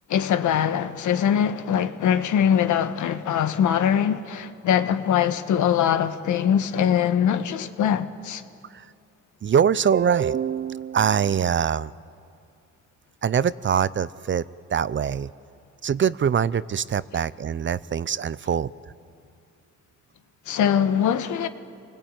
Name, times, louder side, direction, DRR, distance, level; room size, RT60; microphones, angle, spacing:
voice 1, 0.1-8.4 20.5-21.5, left 9 dB, 75° left, 1.4 m, -22 dB
voice 2, 9.4-11.9 13.2-14.4 14.7-15.3 15.8-18.7, right 8 dB, 40° right, 0.6 m, -23 dB
27.5 x 20.0 x 9.0 m
cardioid pair, 90°, 30 cm